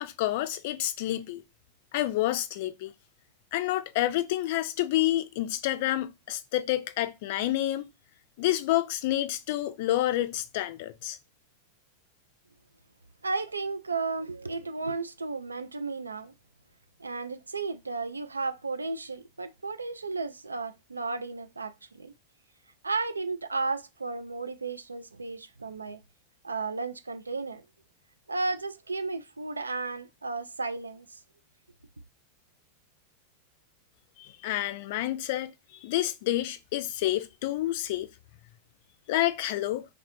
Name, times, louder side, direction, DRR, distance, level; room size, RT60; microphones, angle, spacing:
voice 1, 0.0-1.4 1.9-2.9 3.5-7.9 8.4-11.2 34.2-35.5 35.8-38.1 39.1-39.8, left 14 dB, 50° left, 0.3 m, -29 dB
voice 2, 13.2-16.3 17.0-22.1 22.8-26.0 26.4-27.6 28.3-31.2, right 3 dB, 80° right, 0.3 m, -34 dB
3.4 x 2.5 x 2.4 m
figure-of-eight pair, 90°, 0 cm